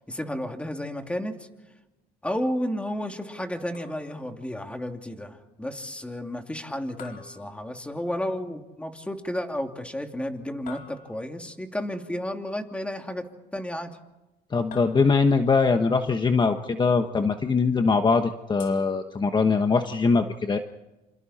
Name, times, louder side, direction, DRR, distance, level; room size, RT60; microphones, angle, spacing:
voice 1, 0.1-1.5 2.2-13.9, left 1 dB, 5° left, 4 dB, 2.7 m, -32 dB
sound 1, 3.7-4.4 7.0-8.2 10.7-11.5 14.7-15.5 18.6-19.6, left 6 dB, 55° left, 4.5 m, -47 dB
voice 2, 14.5-20.6, left 4 dB, 25° left, 6 dB, 1.3 m, -22 dB
28.0 x 27.5 x 4.4 m, 1.0 s
cardioid pair, 110°, 17 cm